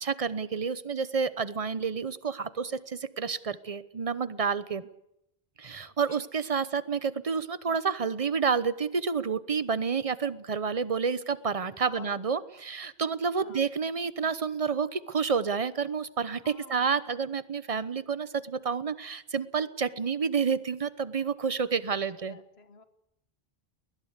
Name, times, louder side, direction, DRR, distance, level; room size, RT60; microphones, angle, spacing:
voice 1, 0.0-4.8 5.6-22.4, right 5 dB, 35° right, 15 dB, 0.9 m, -29 dB
voice 2, 5.8-6.3 11.8-12.2 13.4-13.7 16.4-16.9 22.2-22.8, left 5 dB, 80° left, 10 dB, 1.6 m, -51 dB
20.5 x 20.0 x 8.2 m, 0.82 s
omnidirectional pair, 1.1 m